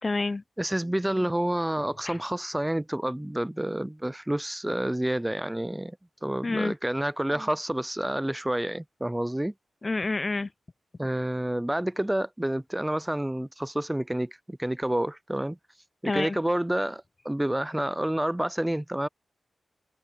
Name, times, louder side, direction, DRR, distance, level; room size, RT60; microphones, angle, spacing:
voice 1, 0.0-0.4 2.1-2.2 6.4-6.7 9.8-10.5 16.0-16.4, left 3 dB, 35° left, 0.6 m, -28 dB
voice 2, 0.6-6.0 6.2-9.5 11.0-15.6 16.0-19.1, right 1 dB, 10° right, 0.4 m, -29 dB
cardioid pair, 70°, 0 cm